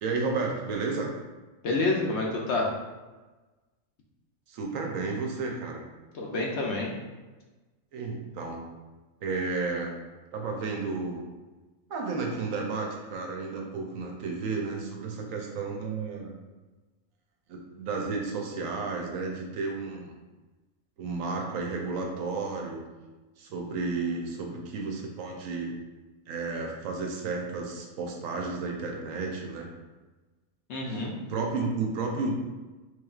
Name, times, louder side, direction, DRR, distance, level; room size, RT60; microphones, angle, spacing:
voice 1, 0.0-1.1 4.5-5.8 7.9-8.6 9.2-9.9 10.3-11.2 11.9-16.3 17.5-20.1 21.0-22.8 23.4-25.7 26.3-29.7 30.8-32.4, right 4 dB, 75° right, 1 dB, 1.0 m, -32 dB
voice 2, 1.6-2.7 6.1-6.9 30.7-31.1, left 2 dB, 65° left, -1 dB, 0.8 m, -28 dB
4.4 x 3.1 x 2.3 m, 1.2 s
omnidirectional pair, 1.4 m